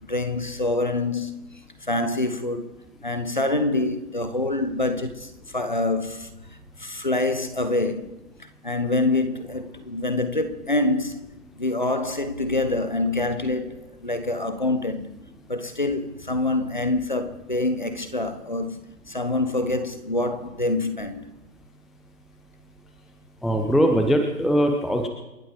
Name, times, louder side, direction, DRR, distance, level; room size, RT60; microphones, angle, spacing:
voice 1, 0.0-1.4 1.9-2.7 3.0-6.3 6.8-8.2 8.6-15.2 15.5-18.8 19.1-21.3, left 2 dB, 30° left, 1.1 m, -26 dB
voice 2, 23.4-25.1, equal, ahead, 0.6 m, -21 dB
29.0 x 12.5 x 3.7 m
figure-of-eight pair, 175°, 47 cm